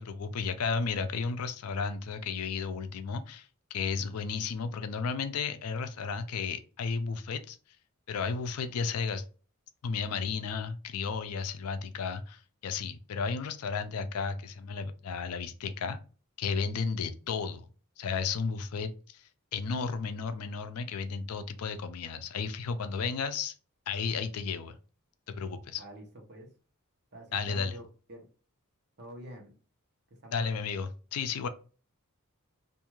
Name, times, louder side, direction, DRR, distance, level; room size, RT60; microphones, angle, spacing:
voice 1, 0.0-7.6 8.1-9.2 9.8-16.0 16.4-17.7 18.0-19.2 19.5-23.5 23.9-24.8 25.3-25.8 27.3-27.8 30.3-31.5, left 5 dB, 85° left, 10 dB, 0.4 m, -33 dB
voice 2, 25.8-26.5 27.1-28.3 29.0-29.5 30.2-30.7, equal, 50° right, 1 dB, 0.9 m, -47 dB
2.5 x 2.3 x 3.0 m, 0.36 s
head